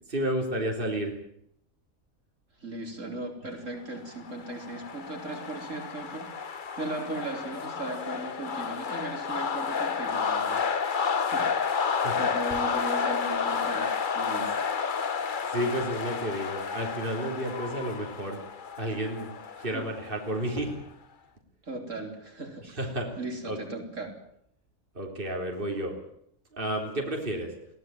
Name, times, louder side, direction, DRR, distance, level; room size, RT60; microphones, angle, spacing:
voice 1, 0.1-1.2 11.9-12.2 15.5-18.4 18.8-19.3 19.6-20.7 22.6-23.2 23.4-23.6 25.0-26.0 26.5-27.5, right 1 dB, 40° right, 2 dB, 3.8 m, -31 dB
voice 2, 2.6-10.6 11.2-11.5 12.2-14.5 19.6-19.8 21.6-22.7 23.2-24.1, right 2 dB, 65° right, 3 dB, 4.7 m, -37 dB
sound 1, 4.1-20.7, left 6 dB, 40° left, 1.0 m, -31 dB
22.0 x 17.0 x 9.3 m, 0.73 s
omnidirectional pair, 1.4 m